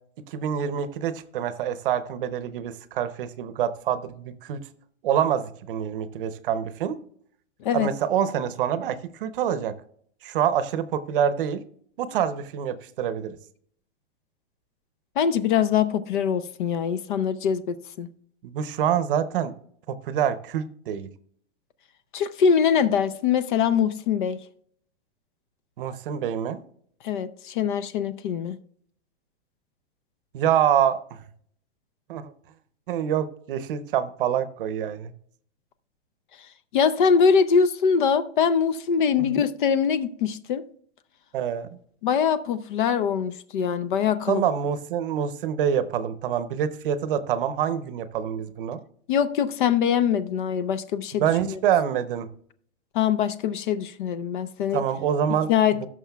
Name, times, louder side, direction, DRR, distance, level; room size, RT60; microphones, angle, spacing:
voice 1, 0.3-4.6 5.0-7.0 7.7-9.7 10.2-11.6 12.0-13.4 18.4-19.5 19.9-21.1 25.8-26.6 30.3-31.2 32.1-32.3 32.9-35.1 39.2-39.4 41.3-41.7 44.3-48.8 51.2-52.3 54.7-55.9, right 9 dB, 50° right, 0.8 m, -26 dB
voice 2, 15.2-18.1 22.1-24.4 27.0-28.6 36.7-40.6 42.0-44.5 49.1-51.6 52.9-54.8 55.5-55.9, left 7 dB, 45° left, 0.6 m, -23 dB
17.0 x 6.3 x 2.3 m
hypercardioid pair, 155°, 35 cm